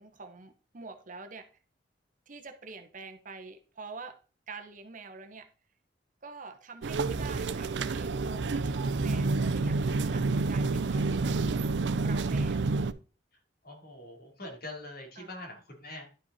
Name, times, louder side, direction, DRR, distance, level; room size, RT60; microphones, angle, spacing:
voice 1, 0.0-1.5 2.3-4.1 4.5-5.5 6.2-11.7 12.0-12.8 15.2-15.3, right 4 dB, 45° right, 1.0 m, -46 dB
sound 1, 6.8-12.9, right 3 dB, 75° right, 0.5 m, -29 dB
voice 2, 13.6-16.0, left 1 dB, 55° left, 3.3 m, -43 dB
11.5 x 5.3 x 4.2 m
head